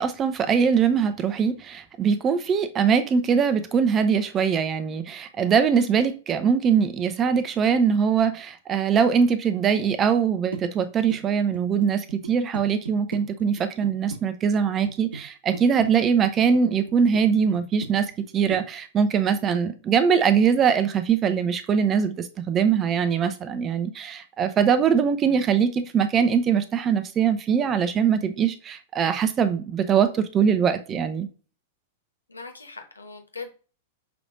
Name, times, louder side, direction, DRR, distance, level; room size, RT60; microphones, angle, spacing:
voice 1, 0.0-31.3, right 7 dB, 25° right, 0.6 m, -22 dB
sound 1, 10.5-14.2 14.6-15.2 15.5-16.6 16.9-17.2 17.5-18.3 18.5-18.6, right 2 dB, 80° right, 1.1 m, -36 dB
voice 2, 32.3-33.5, left 4 dB, 85° left, 1.0 m, -40 dB
5.9 x 3.2 x 2.5 m
figure-of-eight pair, 100°, 0 cm